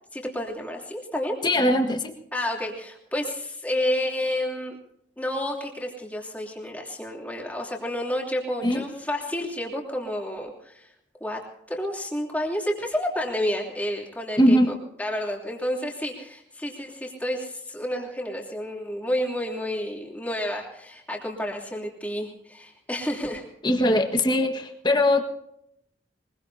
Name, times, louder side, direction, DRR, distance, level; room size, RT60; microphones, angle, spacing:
voice 1, 0.1-1.4 2.3-4.8 5.2-10.9 11.2-23.4, left 1 dB, 10° left, -1 dB, 3.1 m, -30 dB
voice 2, 1.4-2.1 8.6-8.8 14.4-14.7 23.6-25.2, left 1 dB, 25° left, 3 dB, 1.6 m, -21 dB
23.5 x 22.0 x 2.8 m, 0.77 s
head